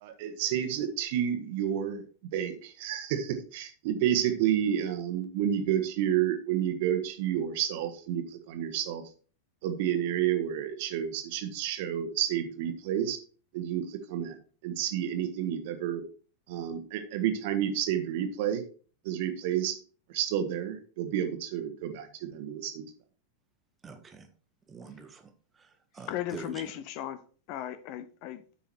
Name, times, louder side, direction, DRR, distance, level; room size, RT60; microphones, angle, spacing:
voice 1, 0.0-2.0 2.3-9.0 9.6-13.2 13.5-14.4 14.6-16.0 16.5-18.6 19.0-19.7 20.1-22.8, right 10 dB, 50° right, 7 dB, 1.3 m, -30 dB
voice 2, 23.8-24.3 24.7-25.3 25.6-26.8, right 5 dB, 20° right, 7 dB, 1.4 m, -45 dB
voice 3, 26.1-27.2 27.5-28.4, left 12 dB, 45° left, 12 dB, 0.8 m, -36 dB
8.6 x 5.5 x 4.5 m, 0.40 s
figure-of-eight pair, 90°, 0 cm